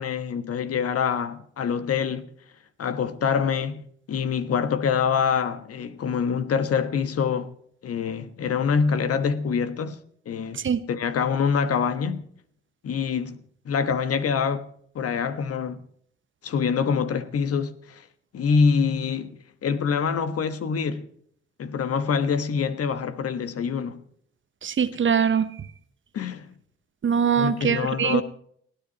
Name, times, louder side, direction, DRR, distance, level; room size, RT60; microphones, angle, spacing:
voice 1, 0.0-2.3 2.8-3.8 4.1-7.5 7.8-10.0 10.2-10.6 10.9-12.3 12.8-13.4 13.6-14.6 14.9-15.8 16.4-18.1 18.3-21.0 21.6-24.0 26.1-26.5 27.4-28.2, left 6 dB, 55° left, 1.3 m, -25 dB
voice 2, 24.6-25.5 27.0-28.2, right 7 dB, 40° right, 1.0 m, -22 dB
30.0 x 10.0 x 2.9 m
hypercardioid pair, 40°, 29 cm